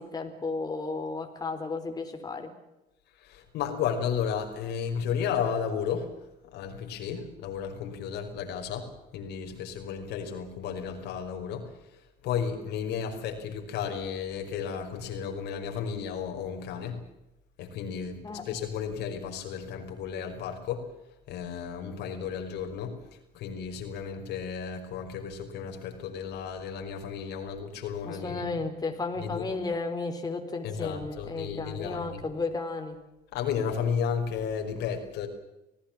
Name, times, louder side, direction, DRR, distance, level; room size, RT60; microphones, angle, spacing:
voice 1, 0.0-2.5 18.2-18.4 28.1-33.0, left 3 dB, 25° left, 4 dB, 4.2 m, -33 dB
voice 2, 3.2-6.1 6.5-11.7 12.2-17.0 17.6-20.9 21.3-23.0 23.3-28.6 29.2-29.4 30.6-32.2 33.3-35.3, left 7 dB, 85° left, 4 dB, 5.3 m, -33 dB
27.5 x 17.5 x 7.5 m, 0.93 s
cardioid pair, 110°, 17 cm